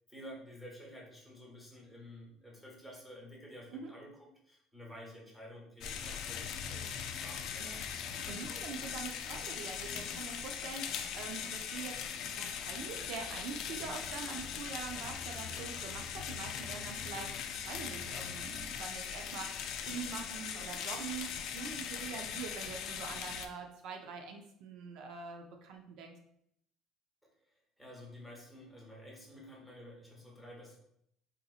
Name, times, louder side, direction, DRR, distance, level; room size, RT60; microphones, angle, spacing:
voice 1, 0.1-7.8 27.4-30.8, equal, ahead, -3 dB, 1.0 m, -51 dB
sound 1, 5.8-23.5, left 7 dB, 60° left, 0.3 m, -40 dB
voice 2, 7.6-26.1, right 5 dB, 65° right, 3 dB, 0.4 m, -44 dB
3.8 x 2.7 x 2.4 m, 0.73 s
cardioid pair, 130°, 0 cm